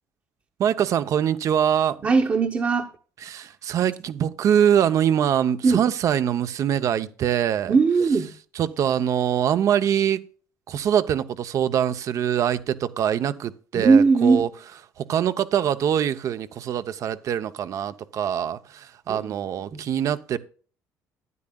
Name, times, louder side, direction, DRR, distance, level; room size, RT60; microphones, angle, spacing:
voice 1, 0.6-2.1 3.2-7.8 8.5-10.2 10.7-14.5 15.0-20.4, right 9 dB, 50° right, 0.7 m, -23 dB
voice 2, 2.0-2.9 5.6-5.8 7.7-8.3 13.8-14.4 19.1-19.3 19.7-19.8, right 4 dB, 35° right, 1.0 m, -19 dB
12.5 x 9.7 x 2.3 m
cardioid pair, 120°, 7 cm